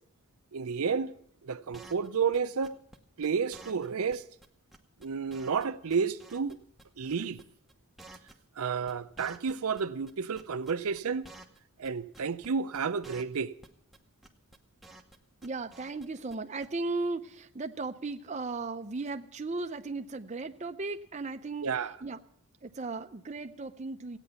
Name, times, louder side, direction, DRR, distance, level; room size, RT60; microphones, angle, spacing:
voice 1, 0.5-1.1 1.4-2.8 3.2-4.2 5.0-6.6 7.0-7.4 8.6-11.3 11.8-13.5 21.6-21.9, right 6 dB, 80° right, 0.6 m, -31 dB
sound 1, 1.7-2.1 2.3-2.4 2.6-3.0 3.2-3.3 3.5-3.9 4.1-4.2 4.4-4.5 4.7-5.6 5.9-6.8 7.1-7.4 7.7-9.8 10.1-11.6 11.8-11.9 12.1-12.5 12.7-12.8 13.0-13.4 13.6-14.0 14.2-15.2 15.4-16.0 16.3-16.4 16.6-16.7, right 2 dB, ahead, 0.8 m, -51 dB
voice 2, 15.4-21.7 22.0-22.2 22.6-24.2, right 3 dB, 30° right, 0.5 m, -36 dB
16.0 x 9.0 x 6.9 m
head